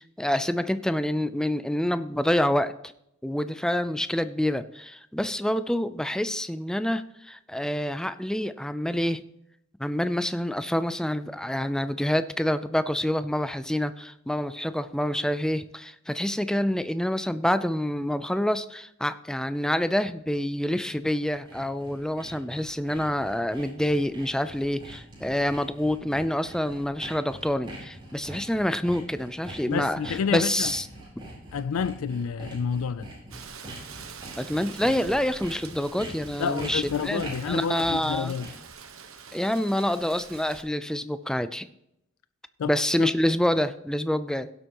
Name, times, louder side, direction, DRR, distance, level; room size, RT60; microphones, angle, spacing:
voice 1, 0.0-2.7 3.2-9.2 9.8-30.8 34.4-38.3 39.3-41.7 42.7-44.5, left 1 dB, 5° left, 0.4 m, -27 dB
Sawing, 20.9-38.7, right 1 dB, 25° right, 4.8 m, -43 dB
voice 2, 29.7-30.7 31.5-33.1 36.4-38.5 42.6-43.1, left 6 dB, 85° left, 0.4 m, -29 dB
Rain, 33.3-40.6, right 6 dB, 75° right, 1.3 m, -45 dB
17.0 x 8.0 x 3.0 m
head